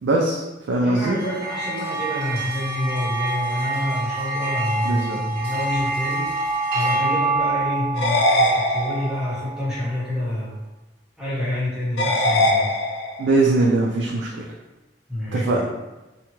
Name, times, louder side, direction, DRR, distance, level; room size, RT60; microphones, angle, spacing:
voice 1, 0.0-1.2 4.8-5.2 13.2-14.4 15.3-15.7, right 2 dB, 70° right, -2 dB, 0.3 m, -21 dB
voice 2, 0.8-10.5 11.2-12.7 15.1-15.6, left 1 dB, 5° right, -9 dB, 0.7 m, -28 dB
sound 1, 1.1-9.8, right 2 dB, 50° right, 0.7 m, -27 dB
sound 2, 8.0-9.4 12.0-13.4, left 1 dB, 70° left, 0.3 m, -21 dB
2.8 x 2.2 x 2.9 m, 1.1 s
head